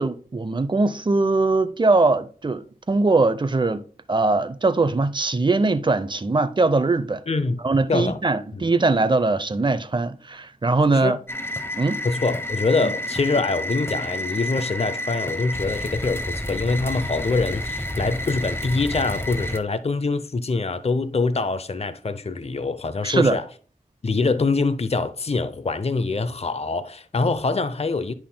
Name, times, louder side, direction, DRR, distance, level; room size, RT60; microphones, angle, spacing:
voice 1, 0.0-7.2 7.6-11.2 11.8-12.0 12.8-12.9 23.0-23.4, right 3 dB, 30° right, 0.6 m, -21 dB
voice 2, 7.3-7.6 7.9-8.2 8.5-8.6 10.9-11.2 12.0-23.5 24.0-28.1, left 3 dB, 40° left, 0.6 m, -24 dB
sound 1, 11.3-19.6, left 1 dB, 15° left, 0.9 m, -30 dB
10.5 x 5.6 x 2.2 m
cardioid pair, 45°, 15 cm